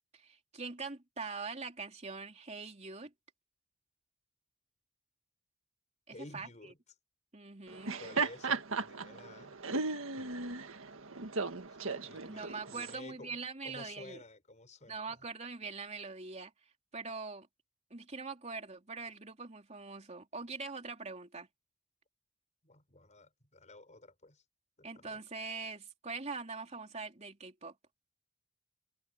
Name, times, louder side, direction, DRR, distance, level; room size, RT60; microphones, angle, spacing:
voice 1, 0.1-3.1 6.1-6.7 7.3-8.0 12.2-14.2 14.9-16.5 16.9-17.5 17.9-21.5 24.8-27.7, right 4 dB, 35° right, 3.5 m, -43 dB
voice 2, 6.1-6.8 8.0-9.6 10.2-10.3 11.9-15.2 22.6-24.4 24.8-25.2, left 2 dB, 35° left, 5.8 m, -53 dB
Laughter, 7.7-12.9, right 4 dB, 80° right, 1.7 m, -36 dB
head